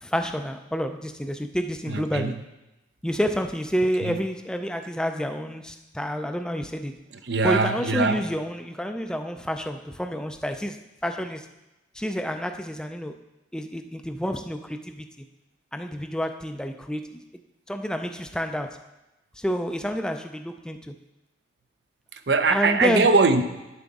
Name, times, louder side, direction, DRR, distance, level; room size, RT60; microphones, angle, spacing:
voice 1, 0.0-2.4 3.0-6.9 7.4-11.5 11.9-13.1 13.5-15.3 15.7-17.2 17.7-18.9 19.4-20.9 22.5-23.1, equal, 5° left, 6 dB, 0.4 m, -29 dB
voice 2, 1.9-2.4 4.0-4.1 7.2-8.2 22.1-23.4, right 4 dB, 60° right, 9 dB, 0.6 m, -22 dB
10.0 x 7.7 x 3.6 m, 1.0 s
head